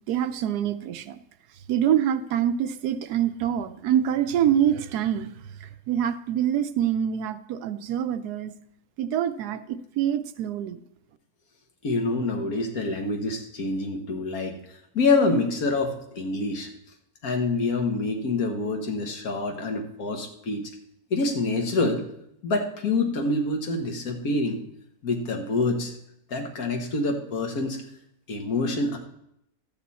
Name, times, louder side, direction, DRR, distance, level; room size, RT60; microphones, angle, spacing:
voice 1, 0.1-1.2 1.7-5.3 5.6-8.5 9.0-10.8, right 10 dB, 80° right, 11 dB, 1.2 m, -25 dB
voice 2, 11.8-14.6 14.9-16.7 17.2-20.6 21.1-22.0 22.4-24.6 25.0-25.9 26.3-27.8 28.3-29.0, left 3 dB, 65° left, 4 dB, 1.8 m, -26 dB
12.5 x 8.6 x 4.1 m, 0.78 s
omnidirectional pair, 1.7 m